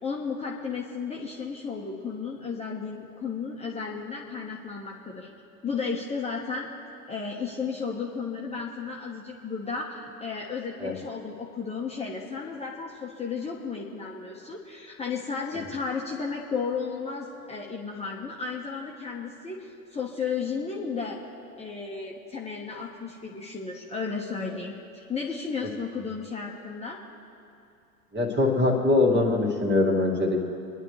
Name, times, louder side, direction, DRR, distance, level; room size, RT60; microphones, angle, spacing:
voice 1, 0.0-5.3 5.6-6.7 7.1-21.2 21.6-27.0, left 5 dB, 15° left, -3 dB, 1.4 m, -33 dB
voice 2, 28.1-30.5, left 2 dB, 25° right, 0 dB, 2.7 m, -23 dB
28.0 x 11.0 x 3.4 m, 2.7 s
figure-of-eight pair, 85°, 44 cm